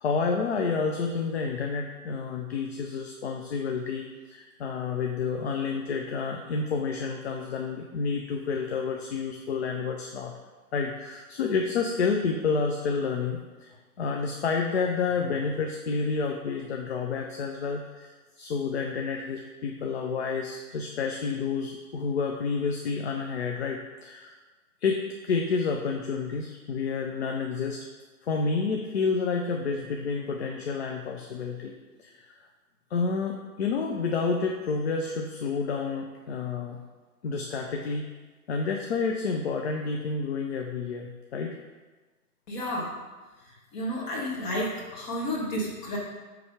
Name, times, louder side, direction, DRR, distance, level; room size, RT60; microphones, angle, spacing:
voice 1, 0.0-10.3 10.7-24.3 24.8-27.8 28.2-31.7 32.0-32.4 32.9-36.8 37.2-38.1 38.5-41.5, left 5 dB, 45° left, 2 dB, 0.6 m, -29 dB
voice 2, 42.5-42.9 43.7-46.0, equal, 30° left, -3 dB, 1.8 m, -31 dB
8.0 x 3.4 x 5.0 m, 1.3 s
figure-of-eight pair, 120°, 46 cm